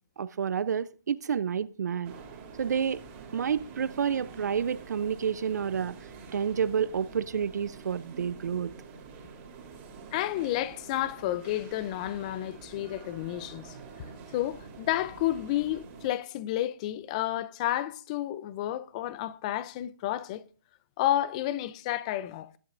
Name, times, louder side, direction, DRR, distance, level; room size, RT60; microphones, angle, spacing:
voice 1, 0.2-2.1 2.6-3.0 3.3-5.9 6.3-8.7, right 7 dB, 55° right, 0.5 m, -29 dB
sound 1, 2.0-16.1, right 5 dB, 20° right, 2.7 m, -47 dB
voice 2, 10.1-13.8 14.3-20.4 21.0-22.5, left 13 dB, 20° left, 0.5 m, -31 dB
20.5 x 11.0 x 2.5 m
hypercardioid pair, 160°, 11 cm